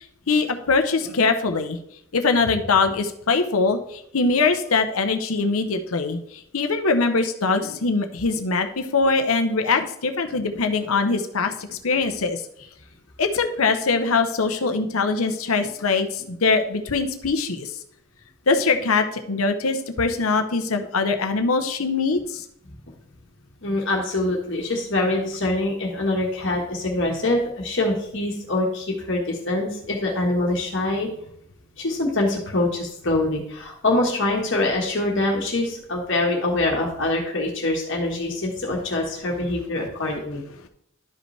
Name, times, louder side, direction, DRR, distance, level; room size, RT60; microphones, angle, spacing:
voice 1, 0.3-1.8 2.1-6.2 6.5-11.5 11.8-12.4 13.2-17.8 18.5-22.4, left 4 dB, 90° left, 7 dB, 0.9 m, -22 dB
voice 2, 23.6-31.1 31.8-40.4, left 2 dB, 60° left, -1 dB, 1.5 m, -24 dB
12.0 x 5.2 x 3.3 m, 0.71 s
head